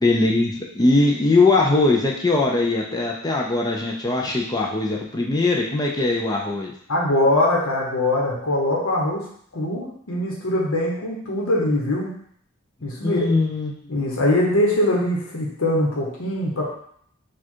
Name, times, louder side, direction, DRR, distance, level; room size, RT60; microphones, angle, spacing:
voice 1, 0.0-6.7 13.0-13.7, left 2 dB, 20° left, 0 dB, 0.4 m, -20 dB
voice 2, 6.9-9.2 9.5-12.1 12.8-13.3 13.9-16.6, left 1 dB, 75° left, -3 dB, 1.0 m, -22 dB
4.6 x 2.4 x 4.4 m, 0.65 s
head